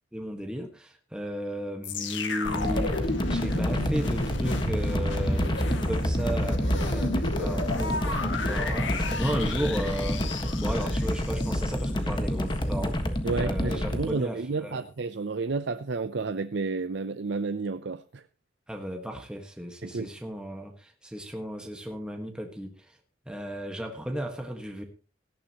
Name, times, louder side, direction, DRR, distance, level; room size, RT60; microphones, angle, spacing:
voice 1, 0.1-13.0 13.3-14.8 18.7-23.0 23.2-24.8, equal, 5° right, 1.5 m, -35 dB
sound 1, 1.8-11.9 12.5-12.6, left 1 dB, 70° left, 1.9 m, -32 dB
sound 2, 2.4-14.1, equal, 25° left, 1.4 m, -29 dB
voice 2, 13.2-18.2 19.8-20.1, right 4 dB, 65° right, 0.6 m, -31 dB
18.0 x 13.0 x 3.0 m
head